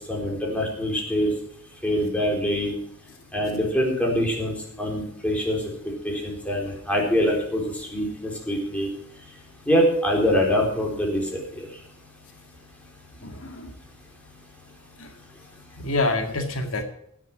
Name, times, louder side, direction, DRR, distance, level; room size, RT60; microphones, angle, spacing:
voice 1, 0.1-1.3 1.8-2.7 3.3-5.6 6.0-8.9 9.7-11.4, equal, 5° left, -1 dB, 4.0 m, -24 dB
voice 2, 13.2-13.7 15.0-15.1 15.8-16.8, left 2 dB, 80° left, 5 dB, 2.0 m, -27 dB
16.5 x 7.2 x 6.0 m, 0.71 s
head